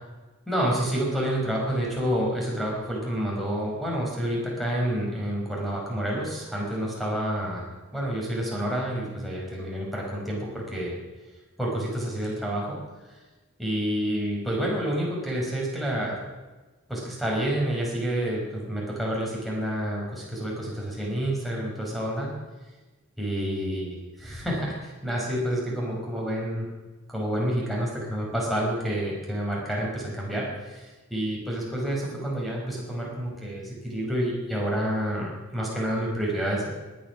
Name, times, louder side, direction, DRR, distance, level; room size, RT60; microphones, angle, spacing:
voice 1, 0.5-11.0 11.6-12.8 13.6-16.2 16.9-22.3 23.2-26.7 27.1-36.7, equal, ahead, -3 dB, 5.4 m, -29 dB
18.5 x 11.5 x 6.2 m, 1.2 s
head